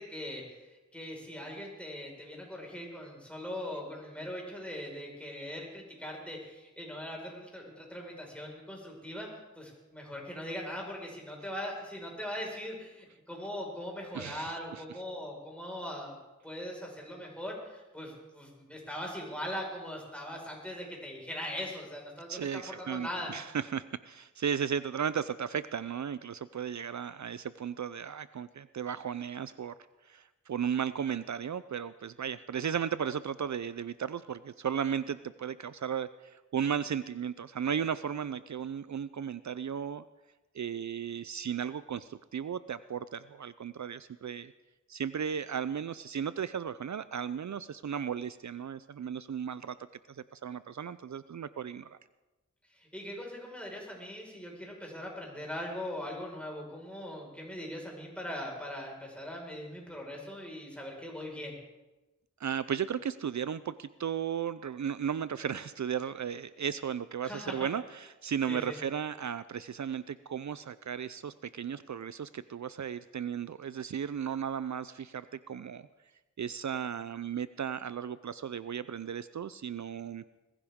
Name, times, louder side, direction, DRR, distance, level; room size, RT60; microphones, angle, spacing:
voice 1, 0.0-9.3 9.6-16.2 16.4-23.3 52.7-61.5 67.2-67.7 68.5-68.8, left 1 dB, 5° left, -1 dB, 4.9 m, -40 dB
voice 2, 14.1-14.8 22.3-29.7 30.1-40.0 40.5-44.5 44.9-49.8 50.1-51.9 62.4-75.9 76.4-80.2, right 8 dB, 70° right, 15 dB, 0.5 m, -35 dB
20.5 x 15.0 x 3.6 m, 1.1 s
wide cardioid pair, 55°, 30 cm